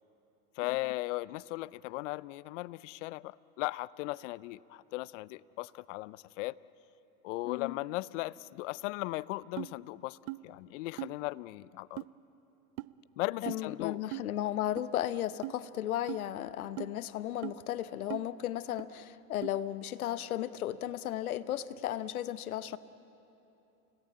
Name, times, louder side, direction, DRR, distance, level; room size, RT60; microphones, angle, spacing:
voice 1, 0.6-6.6 7.2-10.2 10.4-12.0 13.2-14.0, left 20 dB, 60° left, 21 dB, 0.6 m, -37 dB
voice 2, 7.4-7.8 13.4-22.8, left 12 dB, 85° left, 15 dB, 0.9 m, -35 dB
sound 1, 9.6-9.7 10.3-10.4 11.0-11.1 12.0-12.1 12.8-12.9 13.5-13.6 14.1-14.3 14.8-14.9 15.4-15.6 16.1-16.2 16.8-16.9 17.4-17.6 18.1-18.3 18.8-18.9 19.4-19.5, right 23 dB, 50° right, 0.6 m, -39 dB
29.5 x 17.5 x 8.6 m, 2.9 s
hypercardioid pair, 110°, 42 cm